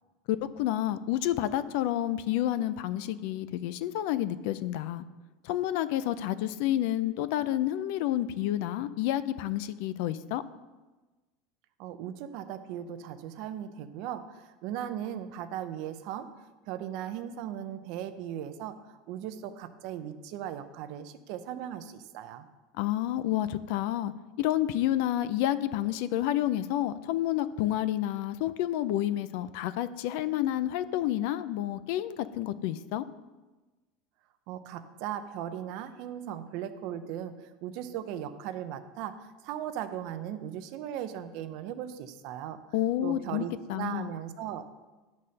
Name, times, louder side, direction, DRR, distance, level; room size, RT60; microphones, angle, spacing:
voice 1, 0.3-5.0 5.4-10.4 22.8-24.1 24.4-33.0 42.7-44.1, left 13 dB, 60° left, 15 dB, 0.4 m, -29 dB
voice 2, 11.8-16.3 16.7-22.5 34.5-42.6 43.0-44.7, right 10 dB, 50° right, 10 dB, 0.6 m, -38 dB
11.0 x 4.2 x 6.4 m, 1.2 s
supercardioid pair, 170°, 0 cm